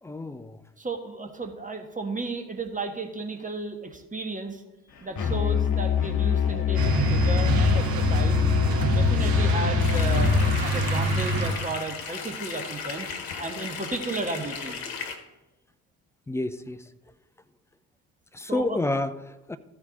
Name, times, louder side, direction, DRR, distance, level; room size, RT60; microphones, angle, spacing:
voice 1, 0.0-0.6 5.2-5.4 16.3-16.8 18.3-19.6, left 2 dB, 5° left, 0.3 m, -30 dB
voice 2, 0.8-4.6 5.0-8.4 8.9-10.3 10.6-13.1 13.4-14.8 18.5-18.8, right 3 dB, 15° right, 1.4 m, -33 dB
Musical instrument, 5.2-10.7, left 9 dB, 45° left, 1.2 m, -25 dB
sound 1, 6.7-11.9, right 1 dB, 50° right, 2.2 m, -25 dB
sound 2, 9.8-15.2, left 6 dB, 75° left, 1.2 m, -36 dB
14.5 x 4.8 x 3.9 m
figure-of-eight pair, 50°, 47 cm